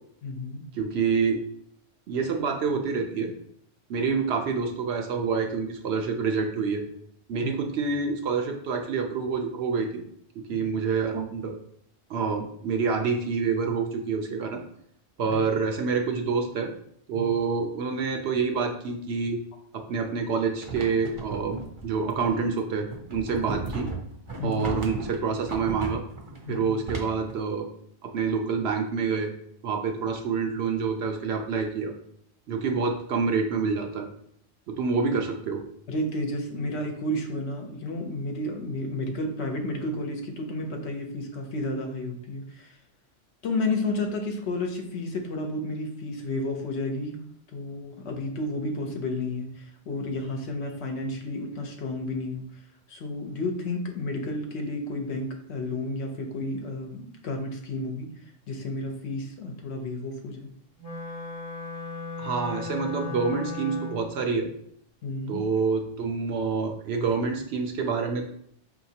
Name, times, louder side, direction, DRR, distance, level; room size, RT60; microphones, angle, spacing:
voice 1, 0.2-0.6 7.4-7.5 10.5-10.6 15.3-15.4 17.1-17.3 24.4-24.6 26.5-26.7 35.9-42.8 43.4-47.2 47.5-52.4 52.9-58.1 58.5-60.5 65.0-65.4, left 2 dB, 65° left, 3 dB, 0.9 m, -31 dB
voice 2, 0.7-1.4 2.1-3.3 3.9-6.8 7.3-10.0 10.4-11.6 12.1-14.6 15.2-16.7 17.1-19.4 19.7-23.9 24.4-26.0 26.5-27.7 28.0-29.3 29.6-31.9 32.5-34.1 34.7-35.6 62.2-64.5 65.3-68.3, right 5 dB, 65° right, 3 dB, 0.8 m, -27 dB
sound 1, 20.6-27.4, right 3 dB, 35° right, 0.5 m, -36 dB
Wind instrument woodwind instrument, 60.8-64.2, left 3 dB, 30° left, 0.5 m, -36 dB
4.9 x 2.8 x 2.7 m, 0.67 s
omnidirectional pair, 1.3 m